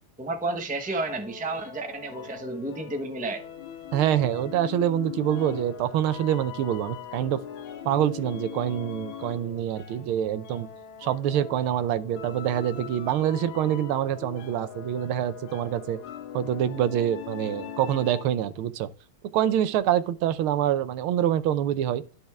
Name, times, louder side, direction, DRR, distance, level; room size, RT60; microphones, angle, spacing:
voice 1, 0.2-3.4, right 2 dB, 5° right, 0.7 m, -31 dB
sound 1, 0.8-18.5, left 9 dB, 75° left, 1.6 m, -41 dB
voice 2, 3.9-7.4 7.8-10.7 11.0-16.0 16.3-18.9 19.3-22.0, right 11 dB, 85° right, 1.6 m, -26 dB
12.5 x 4.3 x 3.5 m
omnidirectional pair, 2.3 m